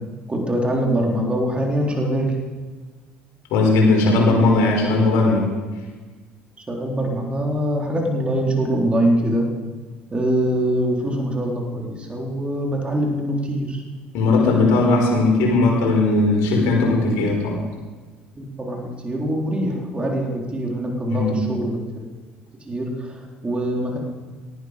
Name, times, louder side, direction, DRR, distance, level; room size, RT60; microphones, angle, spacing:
voice 1, 0.3-2.3 6.7-9.5 10.1-13.8 18.4-21.8 22.7-24.0, right 1 dB, 20° right, 0 dB, 4.0 m, -23 dB
voice 2, 3.5-5.5 14.1-17.6 21.1-21.3, left 3 dB, 55° left, -1 dB, 5.4 m, -18 dB
18.0 x 13.0 x 5.2 m, 1.3 s
figure-of-eight pair, 60°, 6 cm